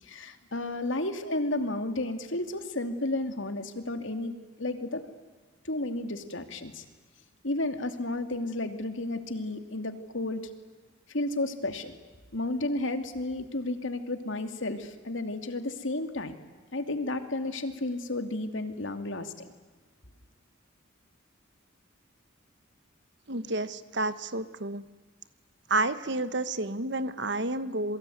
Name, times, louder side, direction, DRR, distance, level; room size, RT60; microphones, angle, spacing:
voice 1, 0.0-4.3 4.6-5.1 5.6-6.8 7.4-10.4 11.1-12.0 12.3-16.4 16.7-19.5, left 2 dB, 70° left, 7 dB, 2.6 m, -32 dB
voice 2, 23.3-24.8 25.7-28.0, right 2 dB, 60° right, 13 dB, 1.3 m, -30 dB
28.0 x 22.5 x 9.4 m, 1.3 s
head